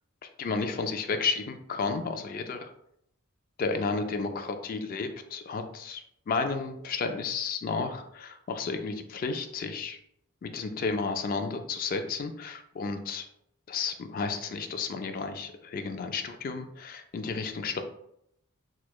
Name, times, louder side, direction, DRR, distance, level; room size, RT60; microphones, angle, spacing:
voice 1, 0.4-2.7 3.6-10.0 10.4-13.3 13.7-17.8, left 4 dB, 40° left, 7 dB, 0.3 m, -32 dB
4.4 x 2.2 x 2.3 m, 0.74 s
head